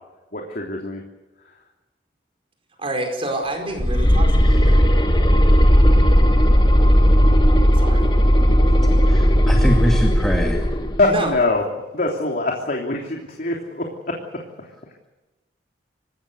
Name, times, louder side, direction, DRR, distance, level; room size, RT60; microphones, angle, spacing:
voice 1, 0.3-1.0 11.0-11.6 11.9-14.2, left 2 dB, 50° left, 0 dB, 3.2 m, -23 dB
voice 2, 2.8-4.9 7.7-8.1 11.0-11.4, right 1 dB, 30° right, 3 dB, 5.0 m, -28 dB
sound 1, 3.8-11.0, equal, 25° left, 1.8 m, -15 dB
voice 3, 9.1-10.6, equal, 5° left, 1 dB, 2.3 m, -23 dB
26.5 x 16.5 x 8.3 m, 1.1 s
head